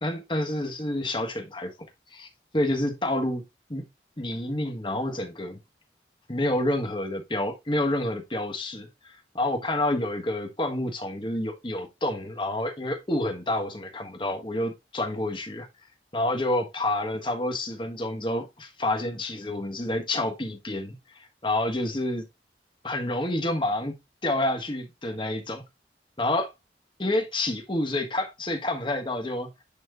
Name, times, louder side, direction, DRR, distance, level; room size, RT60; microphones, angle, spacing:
voice 1, 0.0-1.7 2.1-2.3 2.5-3.4 3.7-3.8 4.2-5.6 6.3-15.7 16.1-21.0 21.4-22.2 22.8-24.0 24.2-25.6 26.2-26.5 27.0-29.5, left 1 dB, 25° left, 1.5 m, -28 dB
10.0 x 4.4 x 2.5 m
head